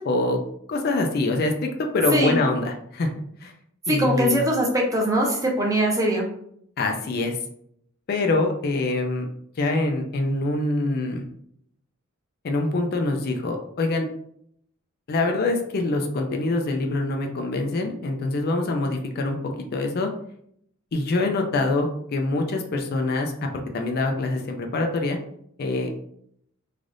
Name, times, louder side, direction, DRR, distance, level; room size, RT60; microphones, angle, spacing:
voice 1, 0.1-0.4 0.7-3.1 3.4-3.5 3.9-4.4 6.8-7.4 8.1-9.3 9.6-11.2 12.4-14.1 15.1-20.1 20.9-23.3 23.7-25.2 25.6-26.0, left 2 dB, 50° left, 3 dB, 0.4 m, -25 dB
voice 2, 3.9-6.3, right 1 dB, 15° right, -1 dB, 0.6 m, -22 dB
3.2 x 2.4 x 2.5 m, 0.68 s
head